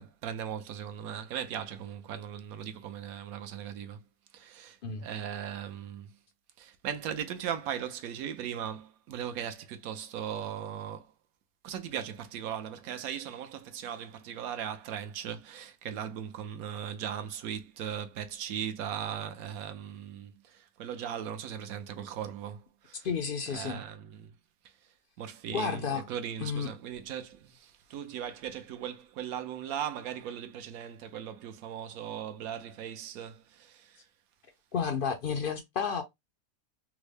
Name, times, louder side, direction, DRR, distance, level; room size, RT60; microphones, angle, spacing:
voice 1, 0.0-4.0 4.3-6.2 6.6-11.1 11.6-23.1 23.5-24.3 24.6-34.1, right 9 dB, 75° right, 1.1 m, -38 dB
voice 2, 23.0-23.8 25.5-26.1 26.4-26.7 34.7-36.0, left 6 dB, 70° left, 0.5 m, -31 dB
3.5 x 2.1 x 3.2 m
omnidirectional pair, 1.6 m